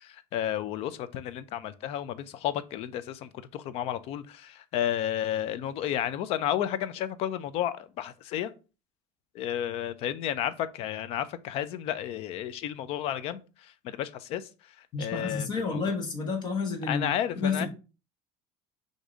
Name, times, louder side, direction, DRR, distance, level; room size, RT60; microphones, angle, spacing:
voice 1, 0.0-8.5 9.3-16.0 16.9-17.7, left 11 dB, 50° left, 0.4 m, -32 dB
voice 2, 14.9-17.1 17.4-17.7, left 4 dB, 35° left, 1.1 m, -30 dB
4.7 x 2.7 x 3.8 m
cardioid pair, 155°, 13 cm